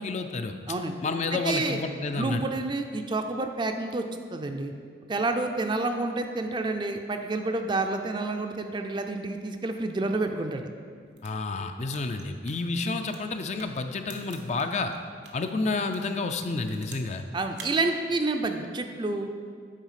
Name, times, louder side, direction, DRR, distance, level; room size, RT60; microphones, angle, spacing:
voice 1, 0.0-0.5 1.0-2.4 11.2-14.9 15.3-17.2, left 3 dB, 40° left, 7 dB, 0.4 m, -30 dB
voice 2, 1.3-1.8 2.1-4.0 4.3-4.7 5.1-10.7 17.3-19.3, right 2 dB, 25° right, 6 dB, 0.4 m, -29 dB
sound 1, 11.0-15.5 15.9-17.2 17.5-17.8, right 5 dB, 90° right, 1.0 m, -48 dB
9.1 x 4.0 x 5.7 m, 2.1 s
head